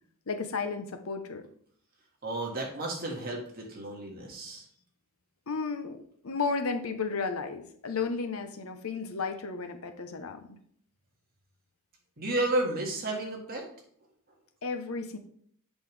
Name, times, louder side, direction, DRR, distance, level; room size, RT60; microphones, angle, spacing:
voice 1, 0.3-1.5 5.5-10.5 14.6-15.2, left 4 dB, 65° left, 7 dB, 0.8 m, -33 dB
voice 2, 2.2-4.7 12.2-13.7, right 2 dB, 45° right, -1 dB, 1.8 m, -32 dB
8.1 x 5.4 x 3.3 m, 0.63 s
head